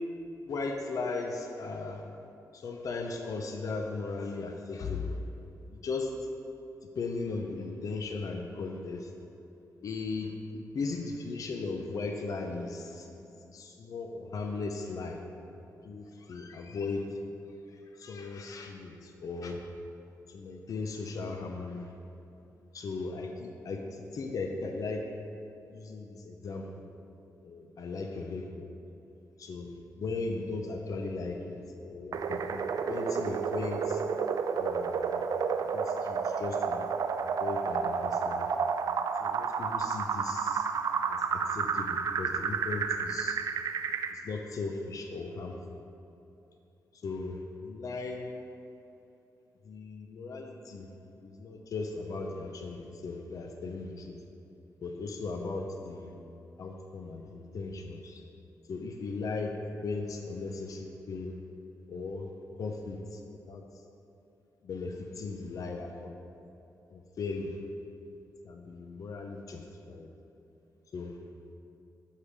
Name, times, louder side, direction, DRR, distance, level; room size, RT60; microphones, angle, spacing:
voice 1, 0.5-2.0 2.5-5.2 5.7-6.1 7.0-9.1 9.8-15.2 15.8-17.1 18.0-19.6 20.3-21.9 22.7-25.0 25.7-26.9 27.4-28.7 29.4-31.6 31.8-34.0 34.5-35.2 35.7-36.8 37.4-38.5 39.2-40.7 41.1-43.4 44.1-45.9 47.0-47.4 47.6-48.3 49.7-50.9 51.2-54.1 54.8-56.1 56.6-58.2 58.7-59.5 59.8-61.3 61.9-62.3 62.6-63.6 64.6-66.2 66.9-67.5 68.4-70.1 70.9-71.1, left 3 dB, 60° left, 3 dB, 0.6 m, -37 dB
sound 1, 32.1-44.1, right 6 dB, 65° right, 0.4 m, -31 dB
6.5 x 5.5 x 4.8 m, 2.8 s
cardioid pair, 95°, 7 cm